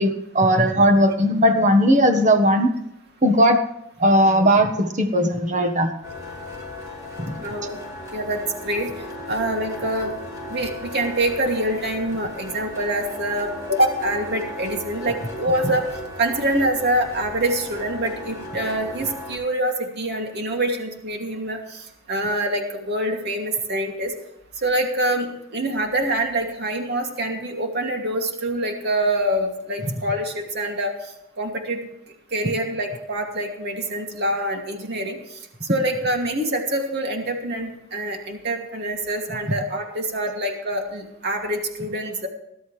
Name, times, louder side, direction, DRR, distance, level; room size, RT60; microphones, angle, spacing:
voice 1, 0.0-2.7 3.2-3.6 4.0-5.9 7.3-7.4, equal, 35° right, 5 dB, 1.4 m, -17 dB
sound 1, 6.0-19.4, left 1 dB, 15° right, 4.8 m, -36 dB
voice 2, 7.4-7.8 8.1-8.9 9.3-10.1 10.5-15.9 16.2-24.1 24.6-30.9 31.4-31.8 32.3-42.3, right 1 dB, 50° right, 2 dB, 2.6 m, -25 dB
20.0 x 11.5 x 3.3 m, 0.84 s
head